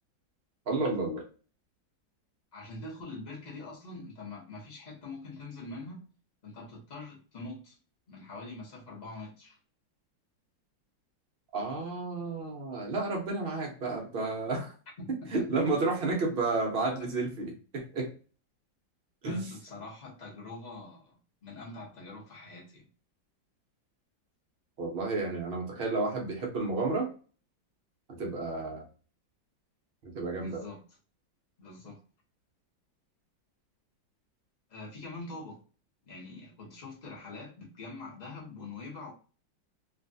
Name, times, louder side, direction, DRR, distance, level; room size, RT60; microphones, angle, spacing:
voice 1, 0.7-1.3 11.5-14.7 15.3-18.1 19.2-19.5 24.8-27.1 28.2-28.9 30.0-30.7, right 3 dB, 65° right, 0 dB, 0.5 m, -31 dB
voice 2, 2.5-6.0 6.4-7.8 8.1-9.6 15.0-15.5 17.0-17.1 19.2-22.9 30.3-30.8 31.6-32.0 34.7-35.6 36.0-39.1, left 2 dB, 40° left, -3 dB, 0.6 m, -44 dB
3.1 x 2.4 x 2.6 m, 0.37 s
omnidirectional pair, 2.1 m